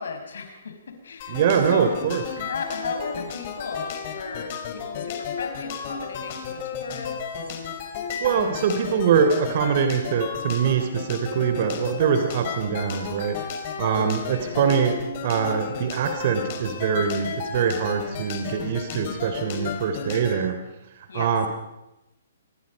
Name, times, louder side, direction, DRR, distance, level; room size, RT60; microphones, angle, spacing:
voice 1, 0.0-1.4 1.7-2.0 2.4-7.2 14.1-14.6 21.1-21.5, left 5 dB, 65° left, 5 dB, 5.5 m, -35 dB
sound 1, 1.2-20.4, left 6 dB, 40° left, 5.2 m, -33 dB
voice 2, 1.3-2.2 8.2-13.5 13.8-20.6 21.1-21.5, right 7 dB, 50° right, 7 dB, 3.2 m, -23 dB
28.0 x 24.0 x 5.4 m, 0.93 s
figure-of-eight pair, 125°, 0 cm